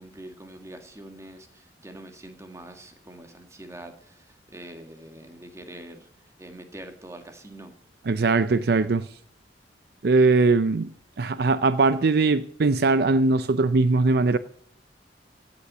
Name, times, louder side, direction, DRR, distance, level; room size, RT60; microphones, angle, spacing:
voice 1, 0.0-6.1 6.4-7.7, right 1 dB, 15° right, 1.7 m, -44 dB
voice 2, 8.1-9.1 10.0-10.9 11.2-14.4, right 3 dB, 60° right, 0.5 m, -20 dB
16.5 x 8.5 x 6.1 m
head